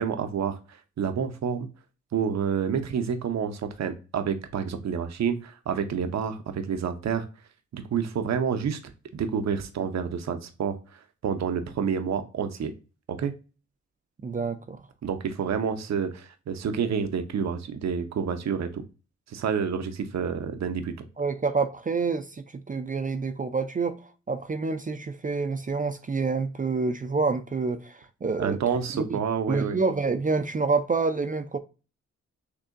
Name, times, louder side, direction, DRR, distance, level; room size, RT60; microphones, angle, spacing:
voice 1, 0.0-1.7 2.1-7.3 7.7-12.7 13.1-13.3 15.0-18.8 19.3-21.1 28.4-29.8, right 7 dB, 65° right, 0.7 m, -29 dB
voice 2, 14.2-14.8 21.2-28.6 28.9-29.2 29.5-31.6, right 4 dB, 30° right, 0.4 m, -28 dB
6.6 x 2.7 x 2.5 m
wide cardioid pair, 105°, 30 cm